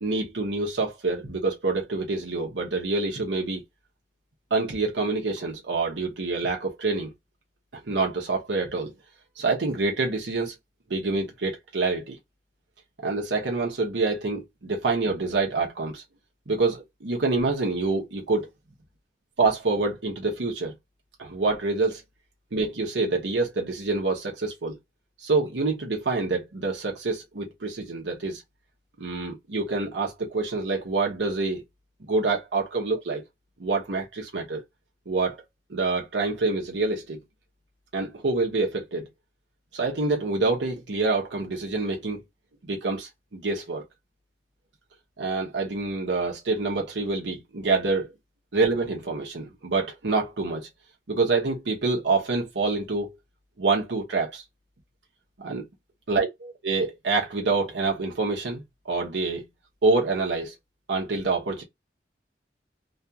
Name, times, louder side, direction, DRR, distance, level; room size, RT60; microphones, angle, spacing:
voice 1, 0.0-3.6 4.5-7.1 7.7-8.9 9.4-10.5 10.9-12.2 13.0-16.0 16.5-18.5 19.4-20.7 21.2-22.0 22.5-24.8 25.2-28.4 29.0-31.6 32.1-33.2 33.6-34.6 35.1-35.4 35.7-37.2 37.9-39.1 39.7-42.2 42.7-43.8 45.2-48.1 48.5-50.7 51.1-53.2 53.6-54.4 55.4-55.6 56.1-56.3 56.6-59.5 59.8-60.5 60.9-61.6, right 3 dB, 85° right, 0.8 m, -26 dB
2.8 x 2.4 x 2.3 m
head